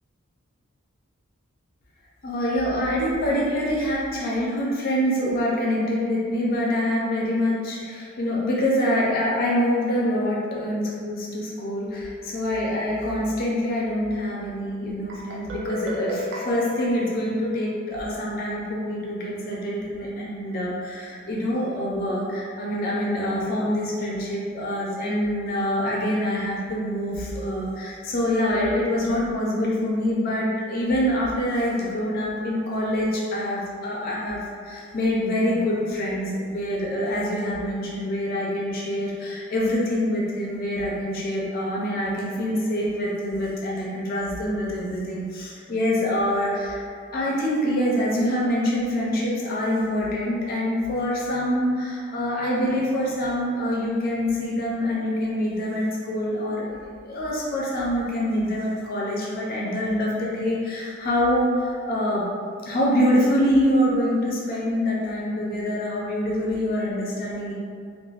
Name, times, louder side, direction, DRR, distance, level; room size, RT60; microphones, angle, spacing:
voice 1, 2.2-46.8 47.1-56.7 57.0-62.3 62.7-67.5, equal, 45° left, -4 dB, 0.4 m, -25 dB
Guitar, 15.1-17.9, left 1 dB, 55° right, 0.5 m, -35 dB
3.2 x 2.0 x 2.4 m, 2.1 s
head